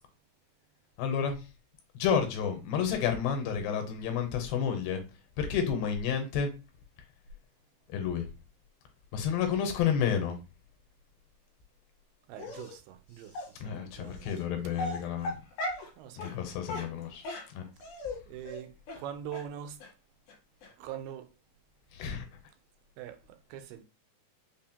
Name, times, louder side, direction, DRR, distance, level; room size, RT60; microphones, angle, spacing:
voice 1, 1.0-1.4 1.9-5.0 5.4-6.5 7.9-8.3 9.1-10.4 13.6-15.4 16.2-17.6 21.9-22.3, left 7 dB, 90° left, 2.5 m, -30 dB
voice 2, 12.3-14.3 16.0-16.3 17.8-17.9 18.3-19.8 20.8-21.3 23.0-23.8, right 10 dB, 90° right, 2.3 m, -43 dB
Dog, 12.4-12.7 13.3-13.5 14.3-14.4 14.7-15.9 16.2-16.3 16.7-18.2 18.4-18.6 18.9-19.0 19.3-19.4 19.8-19.9 20.3-20.4 20.6-20.7, left 2 dB, 70° left, 2.5 m, -37 dB
5.4 x 2.0 x 2.8 m
omnidirectional pair, 4.0 m